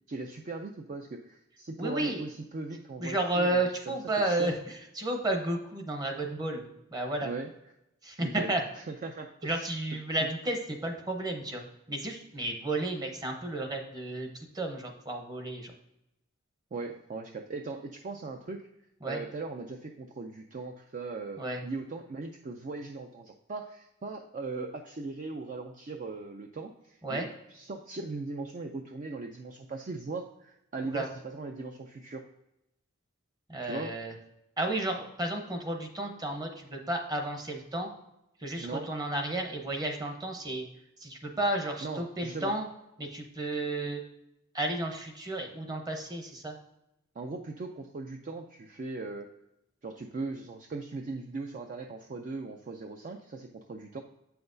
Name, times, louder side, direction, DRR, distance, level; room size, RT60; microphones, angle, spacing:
voice 1, 0.1-4.5 7.2-7.5 8.2-9.7 10.2-10.3 16.7-18.7 19.0-32.2 33.6-34.0 38.6-38.9 41.8-42.5 47.2-49.3 49.8-54.0, right 3 dB, 40° right, 4 dB, 0.4 m, -39 dB
voice 2, 1.8-2.2 3.0-7.3 8.0-8.6 9.4-15.7 19.0-19.2 21.4-21.6 27.0-27.3 30.9-31.1 33.5-34.1 34.6-37.9 38.4-40.6 41.0-42.7 43.0-44.0 44.5-46.6, right 1 dB, 20° right, 3 dB, 0.8 m, -32 dB
7.9 x 5.7 x 2.6 m, 0.85 s
head